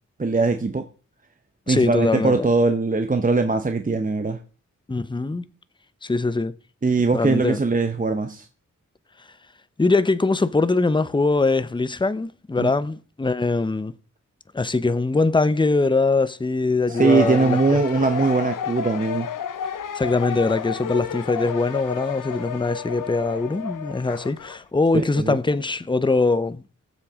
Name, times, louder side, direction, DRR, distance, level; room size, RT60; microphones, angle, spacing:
voice 1, 0.2-0.9 1.7-4.4 6.8-8.4 12.6-12.7 16.9-19.3 24.9-25.4, right 3 dB, 25° right, 0.8 m, -21 dB
voice 2, 1.7-2.5 4.9-5.4 6.0-6.5 7.1-7.6 9.8-13.9 14.5-17.8 19.9-26.6, left 3 dB, 15° left, 0.7 m, -22 dB
sound 1, 16.9-24.6, left 8 dB, 90° left, 0.7 m, -31 dB
19.0 x 7.6 x 3.6 m
wide cardioid pair, 75°, 31 cm